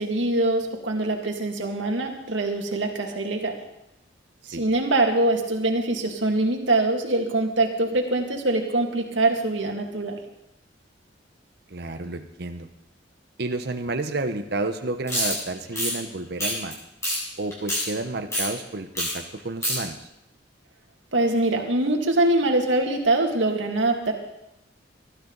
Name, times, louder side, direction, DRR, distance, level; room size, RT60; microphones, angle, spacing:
voice 1, 0.0-3.6 4.5-10.2 21.1-24.1, right 2 dB, 90° right, 2 dB, 2.2 m, -23 dB
voice 2, 11.7-12.7 13.4-16.7 17.4-20.0, right 2 dB, 60° right, 7 dB, 0.9 m, -30 dB
sound 1, 15.1-15.3 15.7-15.9 16.4-16.7 17.0-17.2 17.5-17.8 18.3-18.5 19.0-19.1 19.4-19.8, equal, 15° left, 7.7 m, -25 dB
19.5 x 13.0 x 4.0 m, 0.85 s
head